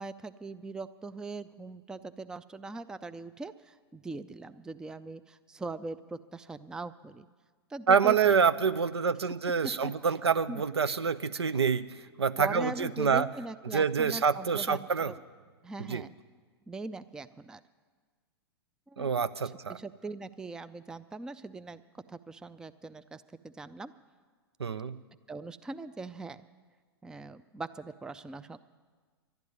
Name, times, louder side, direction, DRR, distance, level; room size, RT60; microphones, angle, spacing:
voice 1, 0.0-7.3 7.7-8.1 9.6-9.9 10.5-10.6 12.4-15.1 15.6-16.2 16.7-17.6 18.9-19.1 19.4-23.9 25.3-26.4 27.0-28.6, right 3 dB, 5° right, 12 dB, 0.3 m, -41 dB
voice 2, 7.9-11.8 12.2-13.3 13.7-15.1 15.8-16.0 19.0-19.8 24.6-25.0, right 6 dB, 80° right, 14 dB, 0.6 m, -26 dB
12.0 x 10.5 x 9.5 m, 1.5 s
figure-of-eight pair, 105°, 14 cm